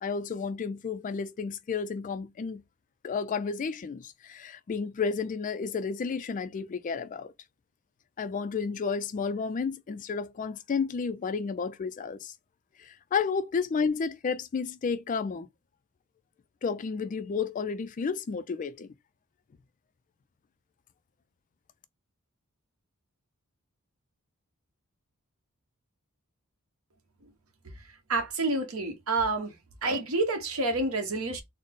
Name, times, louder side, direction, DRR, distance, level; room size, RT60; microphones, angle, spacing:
voice 1, 0.0-2.6 3.0-7.3 8.2-12.3 12.8-15.5 16.6-18.9, left 5 dB, 35° left, 0.3 m, -31 dB
voice 2, 28.1-29.5 29.8-31.4, right 2 dB, 65° right, 1.0 m, -28 dB
3.9 x 2.0 x 3.6 m
head